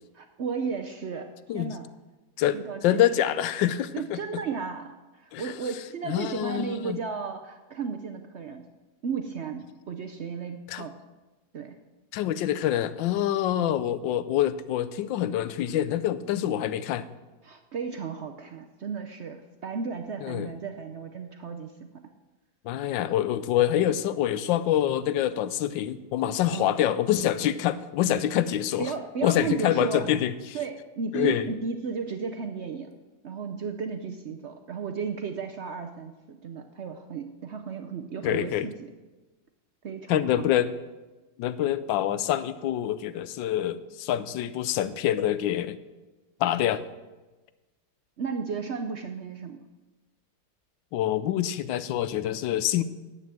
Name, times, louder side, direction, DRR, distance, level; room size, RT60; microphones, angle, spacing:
voice 1, 0.1-1.8 2.5-3.2 3.9-8.7 9.0-10.9 11.5-11.8 17.4-21.9 26.5-26.7 28.8-30.1 30.5-32.9 33.2-38.7 39.8-40.5 48.2-49.6, right 5 dB, 75° right, 6 dB, 0.6 m, -34 dB
voice 2, 2.4-4.4 5.3-5.5 6.1-7.0 10.7-10.9 12.1-17.1 20.2-20.5 22.6-28.9 29.2-30.6 31.1-31.5 38.2-38.7 40.1-40.7 41.4-45.8 46.4-46.8 50.9-52.8, left 11 dB, 80° left, 14 dB, 1.3 m, -26 dB
10.0 x 8.3 x 7.6 m, 1.2 s
omnidirectional pair, 2.0 m